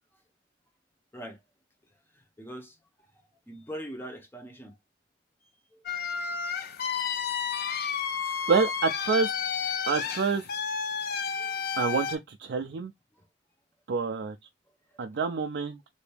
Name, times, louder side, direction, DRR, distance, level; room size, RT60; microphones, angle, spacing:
voice 1, 2.1-2.8 3.5-4.7 5.7-5.9 11.4-11.7 13.1-13.3, equal, 10° left, 0.8 m, -42 dB
sound 1, 5.9-12.2, left 7 dB, 55° left, 0.5 m, -31 dB
voice 2, 8.5-9.3 9.9-10.4 11.8-12.9 13.9-14.4 15.0-15.8, right 4 dB, 65° right, 0.4 m, -27 dB
2.9 x 2.6 x 3.3 m
head